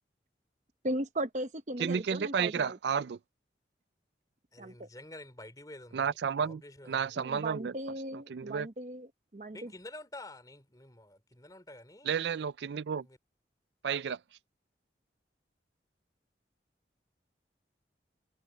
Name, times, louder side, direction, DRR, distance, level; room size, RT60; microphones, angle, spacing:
voice 1, 0.8-2.8 4.6-4.9 7.2-9.7, right 1 dB, 40° right, 0.9 m, -37 dB
voice 2, 1.8-3.2 5.9-6.6 6.9-7.7 8.3-8.7 12.1-13.0 13.8-14.2, right 7 dB, 75° right, 0.4 m, -31 dB
voice 3, 4.5-7.2 9.5-12.2 13.0-13.2, left 1 dB, 20° left, 3.4 m, -49 dB
head